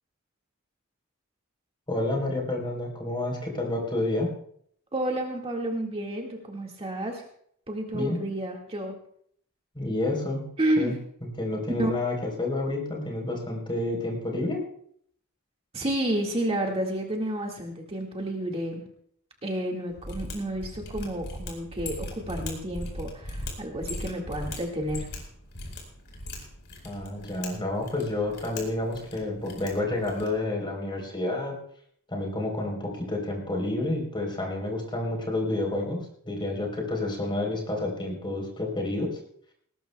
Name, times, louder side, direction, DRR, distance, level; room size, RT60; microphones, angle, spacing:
voice 1, 1.9-4.3 7.9-8.2 9.8-10.4 10.8-10.9 11.4-14.6 26.8-31.5 32.1-36.0 36.2-39.1, left 2 dB, 20° left, 0 dB, 3.9 m, -29 dB
voice 2, 4.9-7.3 7.7-9.0 10.6-11.0 11.8-11.9 15.7-18.8 19.4-25.1, right 1 dB, 25° right, 0 dB, 1.9 m, -30 dB
Mechanisms, 19.9-30.4, left 1 dB, 55° left, 4.4 m, -39 dB
19.0 x 19.0 x 2.3 m, 0.65 s
head